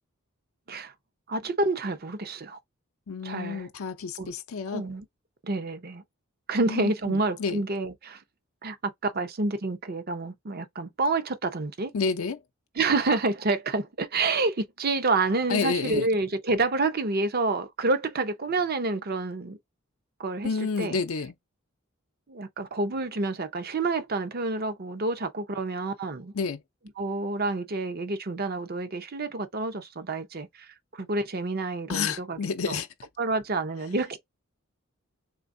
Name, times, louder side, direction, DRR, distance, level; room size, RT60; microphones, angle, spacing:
voice 1, 1.3-2.6 3.2-3.7 4.2-4.3 4.7-5.0 5.4-6.0 6.5-8.2 8.6-8.8 9.0-11.9 12.8-19.6 20.2-20.5 20.8-21.0 22.3-26.3 27.0-32.4 32.7-32.8 33.2-34.2, right 3 dB, 45° right, 0.7 m, -28 dB
voice 2, 3.1-4.8 6.6-7.6 11.9-12.4 15.5-16.1 20.4-21.3 26.3-26.6 31.9-32.9, left 5 dB, 80° left, 0.6 m, -30 dB
3.8 x 3.4 x 2.6 m
head